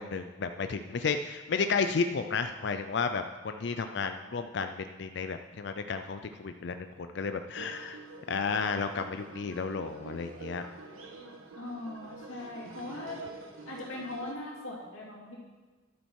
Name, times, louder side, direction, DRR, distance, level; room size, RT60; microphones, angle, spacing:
voice 1, 0.0-8.0 8.3-10.7, left 5 dB, 55° left, 8 dB, 0.4 m, -32 dB
sound 1, 7.5-14.3, right 3 dB, 90° right, 1.3 m, -47 dB
voice 2, 11.6-13.2 13.6-15.4, left 2 dB, 80° left, -3 dB, 2.7 m, -40 dB
11.5 x 8.5 x 4.7 m, 1.3 s
head